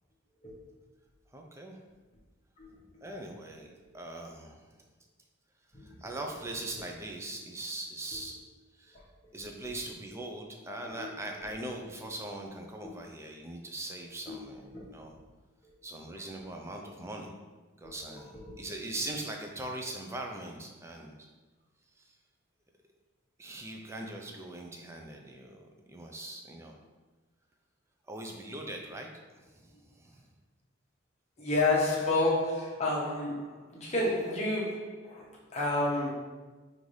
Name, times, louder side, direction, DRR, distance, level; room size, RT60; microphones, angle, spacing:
voice 1, 1.3-1.8 3.0-4.7 5.8-8.4 8.7-9.0 9.3-15.1 15.8-17.3 17.8-21.3 22.0-22.1 23.4-26.8 28.1-30.2, right 2 dB, 15° right, 2 dB, 0.4 m, -41 dB
voice 2, 5.7-6.1 8.9-9.0 10.8-11.1 12.8-12.9 14.3-14.4 14.7-14.9 15.6-15.7 16.1-16.2 17.8-18.6 31.4-36.1, left 2 dB, 30° left, -5 dB, 1.0 m, -31 dB
5.4 x 2.6 x 3.1 m, 1.3 s
head